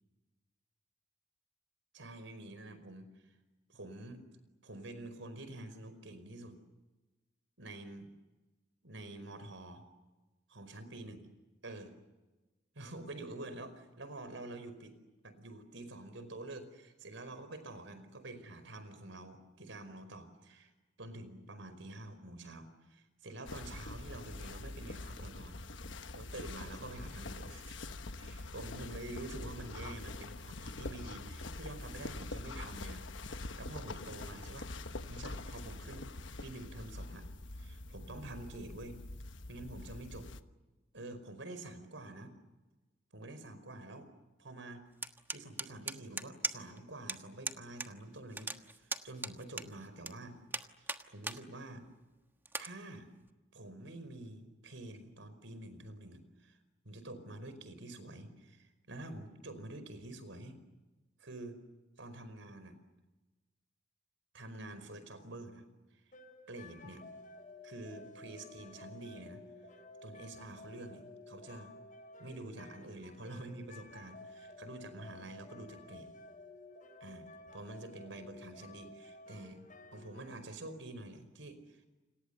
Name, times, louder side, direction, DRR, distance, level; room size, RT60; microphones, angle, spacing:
voice 1, 1.9-3.2 3.7-4.2 4.6-6.6 7.6-8.1 8.8-9.8 10.5-11.2 11.6-11.9 12.7-14.9 15.2-20.7 21.0-25.6 26.1-27.8 28.1-36.1 36.4-37.3 37.6-39.0 39.5-40.3 40.9-42.3 43.1-44.1 44.4-44.8 45.3-48.5 48.8-50.4 51.1-51.8 52.6-53.1 53.5-56.6 56.8-60.6 61.2-61.6 62.0-62.8 64.3-65.6 66.5-67.0 67.6-69.4 70.0-71.7 72.2-76.1 77.0-79.6 79.9-81.9, right 2 dB, 80° right, 11 dB, 4.9 m, -47 dB
sound 1, 23.4-40.4, left 2 dB, 75° left, 1.2 m, -45 dB
sound 2, 45.0-46.8 47.1-47.2 47.4-47.9 48.1-50.1 50.5-51.4 51.8-51.9 52.4-52.7, right 3 dB, 10° right, 1.3 m, -38 dB
sound 3, 66.1-80.4, left 2 dB, 45° left, 6.4 m, -53 dB
29.5 x 27.0 x 6.9 m, 1.1 s
head